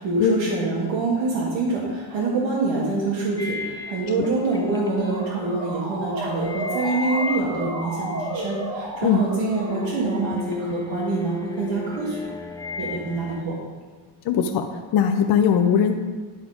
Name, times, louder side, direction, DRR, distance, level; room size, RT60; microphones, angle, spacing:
voice 1, 0.0-12.2 12.8-13.5, right 3 dB, 90° right, -4 dB, 1.6 m, -25 dB
sound 1, 3.4-8.6 8.9-13.4, left 3 dB, 10° left, 0.3 m, -35 dB
Motor vehicle (road) / Siren, 4.4-10.3, right 1 dB, 55° right, 2.0 m, -33 dB
voice 2, 14.3-14.7 14.9-15.9, left 8 dB, 60° left, 5 dB, 0.6 m, -19 dB
10.5 x 4.0 x 4.9 m, 1.4 s
cardioid pair, 145°, 44 cm